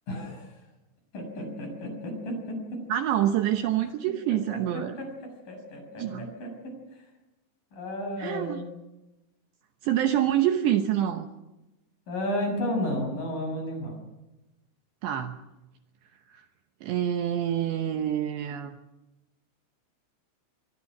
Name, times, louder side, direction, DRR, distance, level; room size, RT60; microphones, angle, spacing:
voice 1, 0.1-0.5 1.1-2.3 5.0-5.1 5.5-6.5 6.9-7.0 7.7-8.7 12.1-14.0, left 1 dB, 40° left, 3 dB, 7.9 m, -32 dB
voice 2, 2.9-5.0 6.0-6.3 8.2-8.6 9.8-11.3 15.0-15.4 16.3-16.4 16.8-18.8, right 11 dB, 75° right, 6 dB, 2.8 m, -26 dB
24.0 x 23.5 x 6.1 m, 0.98 s
omnidirectional pair, 5.8 m